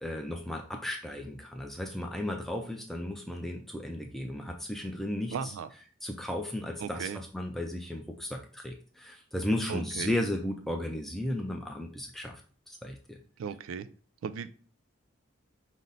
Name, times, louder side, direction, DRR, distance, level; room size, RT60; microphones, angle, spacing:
voice 1, 0.0-5.5 6.0-12.4 12.7-13.2, left 1 dB, ahead, 2 dB, 0.3 m, -35 dB
voice 2, 5.3-5.7 6.8-7.2 9.7-10.1 13.4-13.9 14.2-14.5, right 6 dB, 75° right, 12 dB, 0.3 m, -36 dB
5.3 x 2.0 x 3.8 m, 0.41 s
head